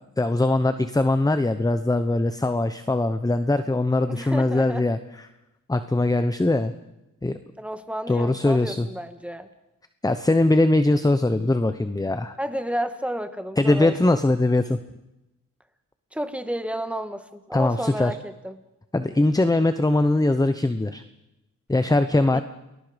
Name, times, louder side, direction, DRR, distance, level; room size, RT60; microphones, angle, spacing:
voice 1, 0.2-5.0 5.7-6.7 7.2-7.4 8.1-8.9 10.0-12.3 13.6-14.8 17.5-18.2 18.9-21.0 21.7-22.4, left 2 dB, 10° left, 10 dB, 0.9 m, -21 dB
voice 2, 4.1-4.9 7.6-9.5 12.4-14.2 16.1-18.6 22.3-22.4, equal, 5° right, 8 dB, 1.7 m, -31 dB
29.5 x 20.5 x 5.2 m, 0.95 s
wide cardioid pair, 100°, 32 cm